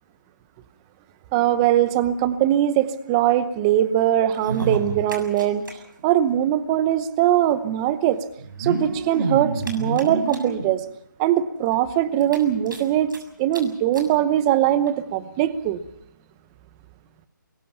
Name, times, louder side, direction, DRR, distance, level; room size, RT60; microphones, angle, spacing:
voice 1, 1.3-5.6 6.0-8.2 8.6-10.8 11.2-13.1 13.4-15.8, right 12 dB, 15° right, 14 dB, 0.9 m, -21 dB
sound 1, 4.3-5.7 6.0-6.1 6.3-6.4 7.4-7.5 8.4-10.7 11.3-11.4 11.7-11.8 12.2-13.2 13.5-13.6 13.9-14.1 14.9-15.0, right 2 dB, 75° right, 7.1 m, -29 dB
25.5 x 23.0 x 5.8 m, 0.72 s
hypercardioid pair, 165°, 11 cm